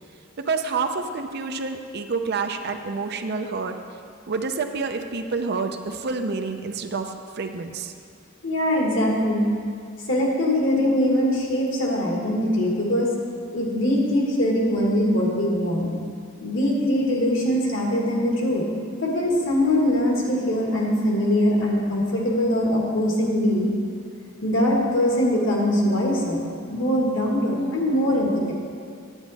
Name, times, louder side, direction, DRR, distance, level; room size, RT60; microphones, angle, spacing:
voice 1, 0.4-3.8 4.3-7.9, right 4 dB, 55° right, 6 dB, 0.6 m, -28 dB
voice 2, 8.4-9.5 10.1-13.1 13.5-15.9 16.4-18.7 19.0-23.7 24.4-28.5, left 1 dB, 70° left, -2 dB, 1.7 m, -22 dB
9.6 x 8.2 x 4.1 m, 2.3 s
head